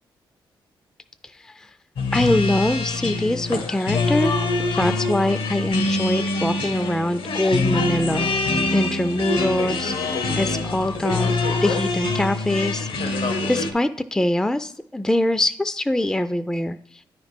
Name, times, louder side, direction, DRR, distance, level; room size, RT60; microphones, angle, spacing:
voice 1, 1.2-1.7 2.1-4.3 4.7-8.3 8.7-11.4 11.6-17.0, left 1 dB, 5° left, 11 dB, 0.3 m, -23 dB
sound 1, 2.0-13.7, left 3 dB, 80° left, 0.9 m, -24 dB
9.2 x 3.1 x 5.0 m, 0.62 s
cardioid pair, 70°, 9 cm